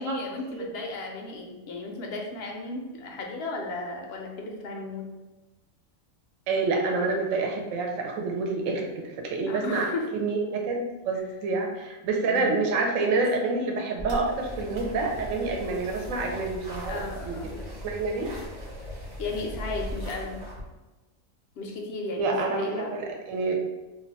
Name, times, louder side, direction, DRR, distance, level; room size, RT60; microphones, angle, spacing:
voice 1, 0.0-5.1 9.5-10.1 12.3-12.6 16.9-17.6 19.2-20.4 21.6-22.9, left 2 dB, 65° left, 1 dB, 0.6 m, -35 dB
voice 2, 6.5-9.9 10.1-17.0 17.3-17.4 17.8-18.3 22.2-23.6, right 3 dB, 75° right, 1 dB, 0.9 m, -28 dB
sound 1, 14.0-20.6, equal, 40° right, 0.6 m, -38 dB
2.4 x 2.2 x 3.9 m, 1.1 s
omnidirectional pair, 1.4 m